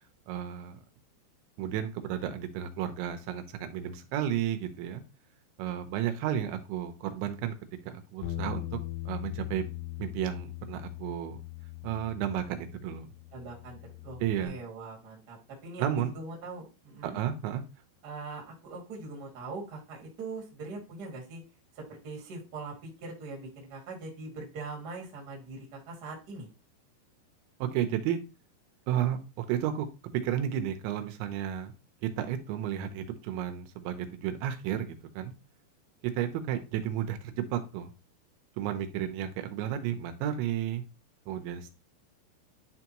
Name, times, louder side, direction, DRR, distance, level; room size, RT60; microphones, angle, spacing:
voice 1, 0.3-0.8 1.6-5.0 5.6-7.6 7.9-8.8 9.1-9.6 10.0-11.4 11.8-13.1 14.2-14.6 15.8-16.1 17.0-17.6 27.6-28.2 28.9-29.9 30.1-31.7 32.0-35.3 36.0-37.9 38.6-40.8 41.3-41.7, right 10 dB, 85° right, 7 dB, 3.1 m, -32 dB
Bass guitar, 8.2-14.5, left 16 dB, 80° left, 3.1 m, -40 dB
voice 2, 13.3-17.2 18.0-21.4 21.7-26.5, right 3 dB, 45° right, -2 dB, 1.4 m, -42 dB
10.0 x 3.5 x 2.9 m, 0.30 s
omnidirectional pair, 5.2 m